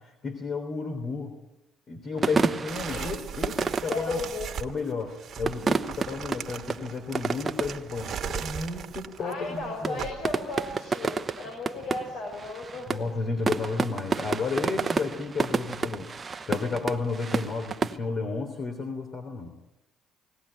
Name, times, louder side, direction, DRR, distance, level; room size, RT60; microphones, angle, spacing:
voice 1, 0.0-1.4 1.9-4.2 4.6-10.1 12.9-16.2 16.5-19.5, left 4 dB, 50° left, 4 dB, 3.3 m, -32 dB
sound 1, 2.2-4.7 5.3-7.9 8.2-8.3 8.5-8.9 9.2-9.5 9.8-18.0, right 4 dB, 30° right, 1.0 m, -30 dB
sound 2, 2.7-10.8, right 8 dB, 50° right, 1.5 m, -38 dB
voice 2, 2.9-3.4 3.8-4.5 9.2-13.0, left 3 dB, 70° left, 1 dB, 6.4 m, -35 dB
20.0 x 17.0 x 10.0 m, 0.93 s
cardioid pair, 95°, 0 cm